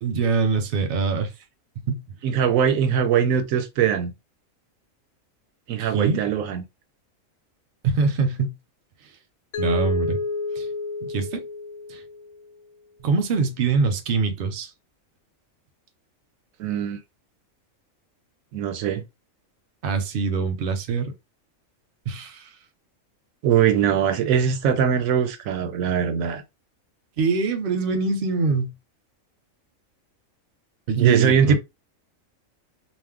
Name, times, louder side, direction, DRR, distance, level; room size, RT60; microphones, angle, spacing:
voice 1, 0.0-1.3 1.9-2.0 5.8-6.2 7.8-8.6 9.6-10.2 10.6-10.7 11.0-11.4 11.9-12.0 13.0-14.7 19.8-21.1 22.1-22.5 27.2-28.7 30.9-31.5, right 4 dB, 55° right, 0.6 m, -24 dB
voice 2, 2.2-4.1 5.7-6.6 16.6-17.0 18.5-19.0 23.4-26.4 31.0-31.5, right 8 dB, 85° right, 1.0 m, -21 dB
Mallet percussion, 9.5-12.4, left 4 dB, 75° left, 0.9 m, -30 dB
2.5 x 2.0 x 3.5 m
omnidirectional pair, 1.4 m